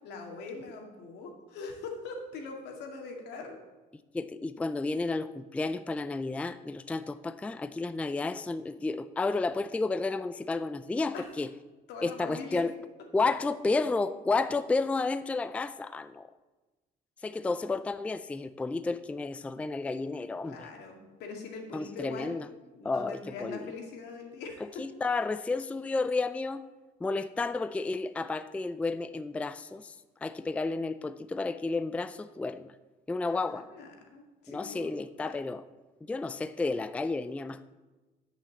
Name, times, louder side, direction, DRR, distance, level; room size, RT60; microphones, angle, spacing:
voice 1, 0.0-3.6 11.1-11.2 11.9-12.6 20.4-22.4 22.7-24.6 33.3-34.9 35.2-35.3, left 4 dB, 85° left, 2 dB, 2.2 m, -42 dB
voice 2, 4.1-11.5 12.0-12.7 13.1-16.3 17.2-20.7 21.7-22.5 22.8-23.7 24.8-26.6 27.0-30.0 30.2-32.7 33.1-33.7 34.5-35.6 36.1-37.6, left 3 dB, 10° left, 13 dB, 0.3 m, -31 dB
10.0 x 5.7 x 7.1 m, 1.2 s
cardioid pair, 110°, 17 cm